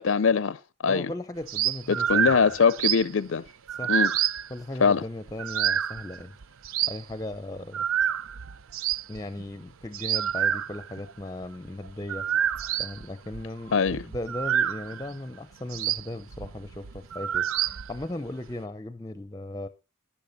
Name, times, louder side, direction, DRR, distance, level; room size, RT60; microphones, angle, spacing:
voice 1, 0.0-1.1 1.9-3.4 3.9-4.1 4.8-5.0 13.7-14.0, left 5 dB, 70° left, 0.5 m, -23 dB
voice 2, 0.9-2.5 3.7-4.0 4.5-6.4 6.8-7.9 9.1-12.3 12.8-19.7, left 1 dB, 15° left, 0.6 m, -37 dB
sound 1, 1.5-3.1 3.5-4.5 5.3-7.4 7.7-15.1 15.7-18.1 18.5-18.6, right 9 dB, 85° right, 0.6 m, -28 dB
12.0 x 10.5 x 4.0 m
head